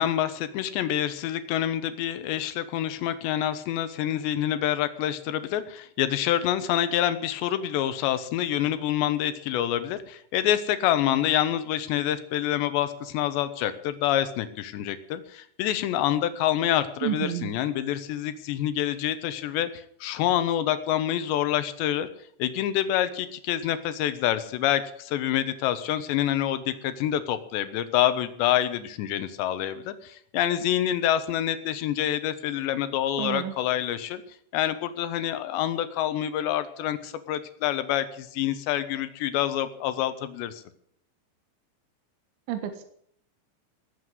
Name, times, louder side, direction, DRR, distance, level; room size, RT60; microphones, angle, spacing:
voice 1, 0.0-22.1 22.4-34.2 34.5-40.6, left 11 dB, 75° left, 12 dB, 3.1 m, -27 dB
voice 2, 17.0-17.5 33.2-33.5 42.5-42.8, right 11 dB, 75° right, 7 dB, 3.6 m, -30 dB
18.5 x 8.1 x 8.1 m, 0.65 s
omnidirectional pair, 5.5 m